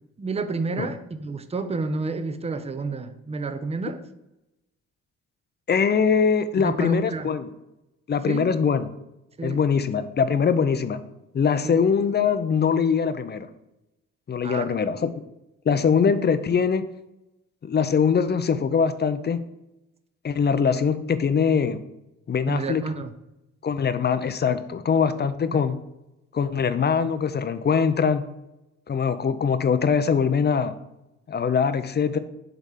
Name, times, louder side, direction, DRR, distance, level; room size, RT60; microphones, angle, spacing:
voice 1, 0.2-4.0 6.6-7.3 8.3-8.5 9.4-9.6 11.6-11.8 14.4-14.7 22.5-23.1, right 3 dB, 20° right, 10 dB, 0.6 m, -30 dB
voice 2, 5.7-7.5 8.1-8.9 9.4-11.0 11.3-13.5 14.3-15.1 15.7-16.9 17.6-19.4 20.2-21.8 22.3-22.8 23.6-25.8 26.3-28.2 28.9-30.7 31.3-32.2, left 6 dB, 35° left, 12 dB, 0.6 m, -22 dB
7.5 x 3.5 x 5.7 m, 0.91 s
cardioid pair, 90°, 30 cm